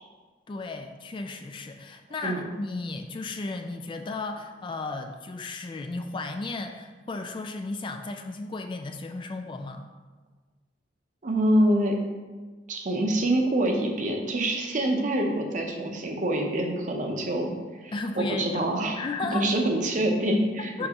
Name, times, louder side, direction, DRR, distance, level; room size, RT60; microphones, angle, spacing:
voice 1, 0.5-9.9 17.9-18.6 19.0-19.5 20.8-20.9, left 3 dB, 25° left, 5 dB, 0.3 m, -34 dB
voice 2, 11.2-12.0 12.7-17.5 17.8-19.0 19.3-20.9, right 1 dB, 45° right, 2 dB, 0.7 m, -25 dB
6.5 x 5.1 x 2.9 m, 1.3 s
head